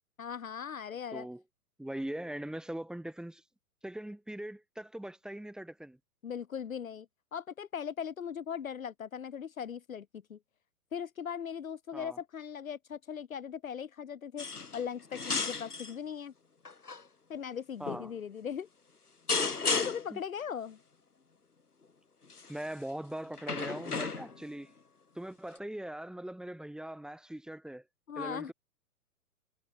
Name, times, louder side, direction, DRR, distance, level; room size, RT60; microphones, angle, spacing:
voice 1, 0.2-1.3 6.2-10.4 10.9-14.4 14.7-16.3 17.3-18.7 19.6-20.8 28.1-28.5, left 7 dB, 60° left, 1.5 m, -39 dB
voice 2, 1.1-1.4 1.8-3.4 3.8-6.0 11.9-12.2 17.8-18.1 20.1-20.2 22.5-24.7 25.1-27.8 28.2-28.5, right 1 dB, ahead, 3.7 m, -41 dB
sound 1, 14.4-14.9 15.1-15.9 16.6-17.0 17.9-18.1 19.3-20.2 22.3-22.6 23.4-24.5 25.6-25.7, left 4 dB, 80° left, 1.8 m, -34 dB
figure-of-eight pair, 115°, 45 cm